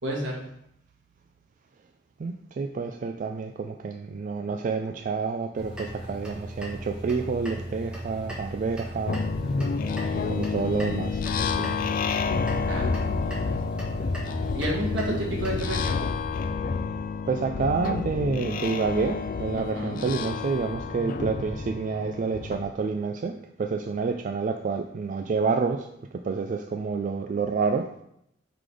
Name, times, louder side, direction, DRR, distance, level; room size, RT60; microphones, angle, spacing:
voice 1, 0.0-0.4 12.7-12.9 14.5-16.0 19.5-20.0, right 1 dB, 75° right, -2 dB, 1.6 m, -31 dB
voice 2, 2.2-9.2 10.1-11.2 11.6-11.8 15.1-15.2 17.3-25.9 26.2-27.9, right 4 dB, 45° right, 5 dB, 0.3 m, -28 dB
sound 1, 5.5-15.7, right 1 dB, 5° right, 1.2 m, -37 dB
sound 2, 9.1-22.7, left 5 dB, 50° left, 0.4 m, -29 dB
5.0 x 3.9 x 4.9 m, 0.77 s
head